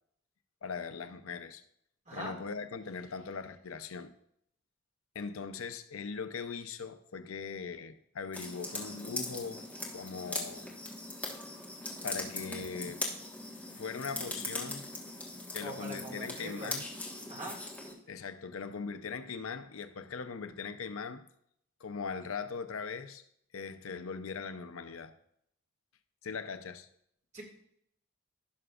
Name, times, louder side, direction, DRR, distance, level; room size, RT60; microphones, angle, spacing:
voice 1, 0.6-1.6 2.1-4.1 5.1-9.6 9.9-10.7 12.0-13.0 13.8-14.9 15.5-16.9 18.1-21.2 21.8-23.2 23.5-25.1 26.2-26.9, left 5 dB, 75° left, 0.6 m, -40 dB
voice 2, 2.1-2.4 15.6-16.7 17.3-17.6 27.3-27.4, right 1 dB, 35° right, 2.1 m, -42 dB
sound 1, 8.3-17.9, left 2 dB, 5° left, 1.3 m, -40 dB
16.0 x 5.9 x 2.4 m
head